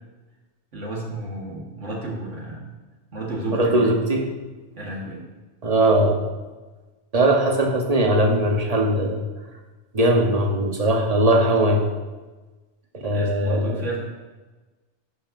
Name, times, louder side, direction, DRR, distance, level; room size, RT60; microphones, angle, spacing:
voice 1, 0.7-2.7 3.1-3.9 4.8-5.2 13.1-14.0, right 2 dB, 75° right, -2 dB, 1.8 m, -32 dB
voice 2, 3.5-4.3 5.6-6.2 7.1-9.2 9.9-11.8 12.9-13.8, right 1 dB, 35° right, 1 dB, 0.9 m, -20 dB
10.5 x 5.4 x 2.6 m, 1.2 s
omnidirectional pair, 1.3 m